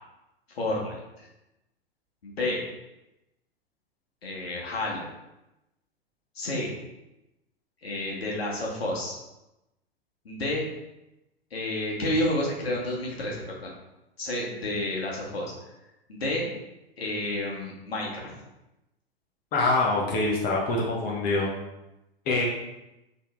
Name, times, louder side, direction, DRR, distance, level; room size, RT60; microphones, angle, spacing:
voice 1, 0.5-1.3 2.2-2.6 4.2-5.1 6.3-6.7 7.8-9.2 10.2-10.7 11.5-13.7 14.2-15.5 16.1-16.5 17.0-18.3, left 1 dB, 80° left, -3 dB, 1.5 m, -30 dB
voice 2, 19.5-21.5 22.3-22.5, left 2 dB, 30° left, -2 dB, 1.1 m, -25 dB
4.5 x 3.6 x 3.3 m, 0.93 s
figure-of-eight pair, 100°, 30 cm